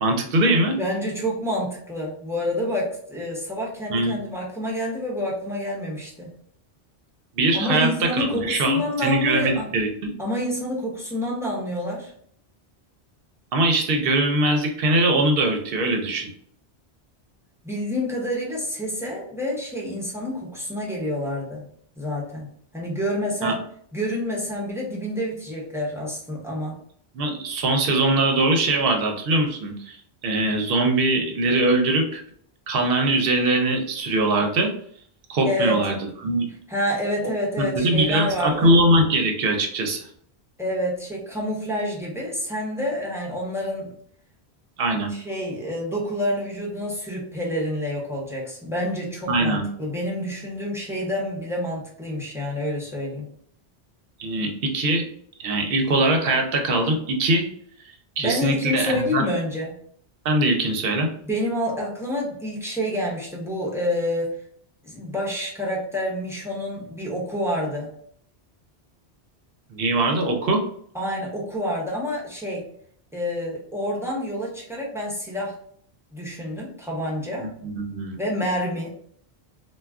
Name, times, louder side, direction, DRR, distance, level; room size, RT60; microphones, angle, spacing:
voice 1, 0.0-0.8 3.9-4.2 7.4-10.1 13.5-16.3 23.4-23.6 27.1-30.0 30.2-32.2 32.7-34.7 35.3-36.0 36.2-36.5 37.2-37.3 37.6-40.1 44.8-45.1 49.3-49.7 54.2-55.1 55.4-57.5 58.2-59.2 60.2-61.1 69.7-70.6 77.6-78.2, right 2 dB, 65° right, 4 dB, 0.7 m, -22 dB
voice 2, 0.8-6.3 7.5-9.7 10.2-12.1 17.6-21.7 22.0-23.6 23.9-26.8 35.4-35.8 36.7-38.7 40.6-43.9 45.1-53.3 58.2-59.8 61.3-64.3 64.8-67.9 70.9-72.7 73.1-75.5 76.1-77.5 78.2-78.9, left 1 dB, 5° right, -3 dB, 0.5 m, -28 dB
2.2 x 2.2 x 3.4 m, 0.63 s
omnidirectional pair, 1.1 m